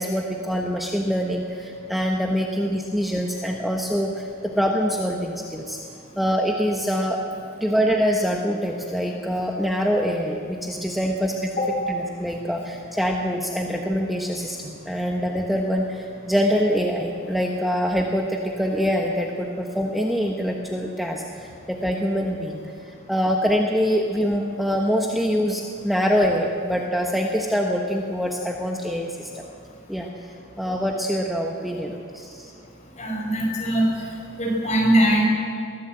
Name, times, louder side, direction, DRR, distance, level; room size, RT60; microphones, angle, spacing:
voice 1, 0.0-4.3 4.6-5.8 6.2-7.2 7.6-11.5 11.9-22.6 23.1-29.4 29.9-30.1 30.6-32.5, equal, ahead, 0 dB, 1.2 m, -24 dB
voice 2, 33.0-33.9 34.4-35.2, right 1 dB, 35° left, -2 dB, 5.9 m, -21 dB
23.0 x 15.5 x 7.9 m, 2.4 s
head